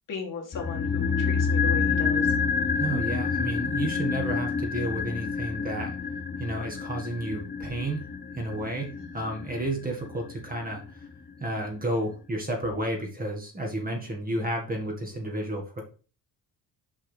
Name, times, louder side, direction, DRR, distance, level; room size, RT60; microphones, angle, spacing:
voice 1, 0.1-2.3 9.0-9.2, left 5 dB, 55° left, 2 dB, 2.1 m, -37 dB
sound 1, 0.5-10.8 11.0-11.1, left 5 dB, 25° left, 0.6 m, -28 dB
voice 2, 2.7-6.0 6.4-8.1 8.4-11.1 11.4-15.8, right 1 dB, 20° right, 1 dB, 1.8 m, -31 dB
5.8 x 4.8 x 5.0 m, 0.37 s
cardioid pair, 130°, 39 cm